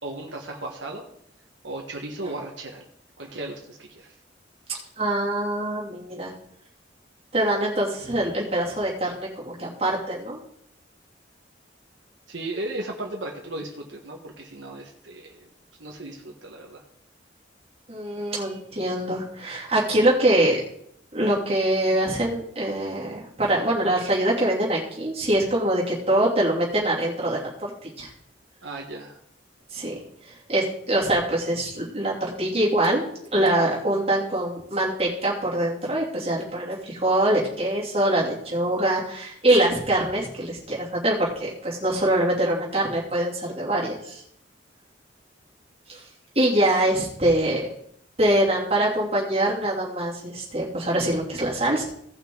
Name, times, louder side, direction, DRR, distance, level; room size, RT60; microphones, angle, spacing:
voice 1, 0.0-1.0 1.6-2.8 3.2-4.1 12.3-15.5 15.8-16.8 28.6-29.2, right 2 dB, 75° right, 0 dB, 1.4 m, -35 dB
voice 2, 5.0-6.3 7.3-10.4 17.9-20.6 21.1-27.7 28.0-28.1 29.7-33.0 33.3-44.2 45.9-46.0 46.3-47.7 48.2-51.8, right 1 dB, 30° right, -5 dB, 2.9 m, -24 dB
17.0 x 5.9 x 3.9 m, 0.71 s
head